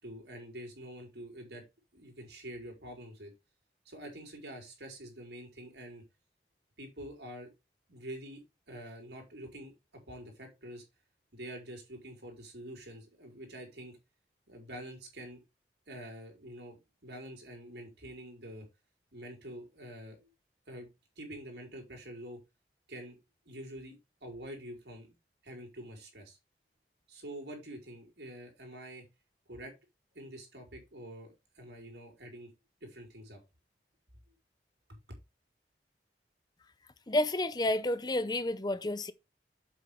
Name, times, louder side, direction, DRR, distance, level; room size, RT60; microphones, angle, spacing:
voice 1, 0.0-1.6 1.9-3.3 3.8-6.0 6.8-7.5 7.9-8.4 8.7-9.7 10.1-10.8 11.3-14.0 14.5-15.4 15.9-18.7 19.1-20.3 20.7-20.9 21.2-22.4 22.9-23.2 23.4-25.1 25.4-26.4 27.1-29.0 29.5-29.7 30.1-32.5 32.8-33.4, right 1 dB, 80° right, 4.9 m, -46 dB
voice 2, 37.1-39.1, left 1 dB, 25° left, 0.6 m, -30 dB
8.1 x 7.3 x 3.5 m
head